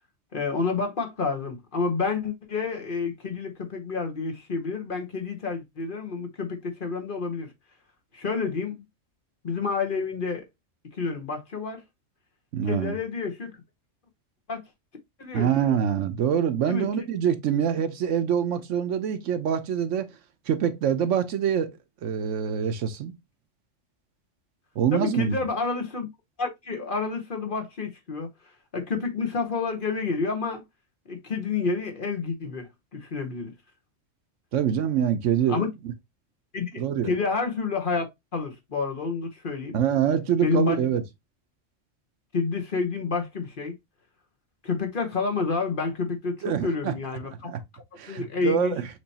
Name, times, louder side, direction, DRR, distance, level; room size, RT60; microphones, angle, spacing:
voice 1, 0.3-7.5 8.1-8.8 9.4-10.4 10.9-11.8 12.7-13.5 14.5-14.6 15.2-15.8 16.7-16.9 24.9-26.1 26.4-28.3 28.7-30.6 31.1-33.5 35.5-35.7 36.5-38.1 38.3-39.8 40.4-40.8 42.3-43.7 44.6-48.7, left 4 dB, 45° left, 1.2 m, -29 dB
voice 2, 12.5-13.0 15.3-20.1 20.5-21.7 22.0-23.1 24.8-25.4 34.5-35.6 36.7-37.1 39.7-41.0 46.4-46.9 47.4-47.6 48.0-48.9, right 8 dB, 75° right, 1.0 m, -25 dB
6.2 x 3.0 x 2.8 m
omnidirectional pair, 1.3 m